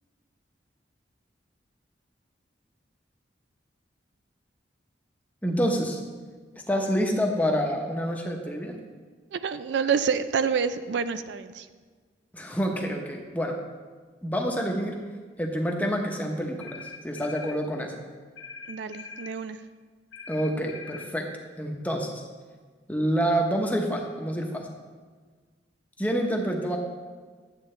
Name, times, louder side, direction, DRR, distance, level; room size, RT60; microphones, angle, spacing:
voice 1, 5.4-6.0 6.7-8.8 12.3-13.6 14.2-15.0 15.4-17.9 20.3-21.3 21.6-22.2 22.9-24.7 26.0-26.8, equal, 10° left, 1 dB, 0.8 m, -27 dB
voice 2, 9.3-11.7 18.7-19.6, right 6 dB, 70° right, 12 dB, 0.4 m, -28 dB
sound 1, 16.6-17.6 18.4-19.3 20.1-21.1, left 5 dB, 85° left, 0.9 m, -42 dB
11.0 x 8.0 x 3.2 m, 1.5 s
head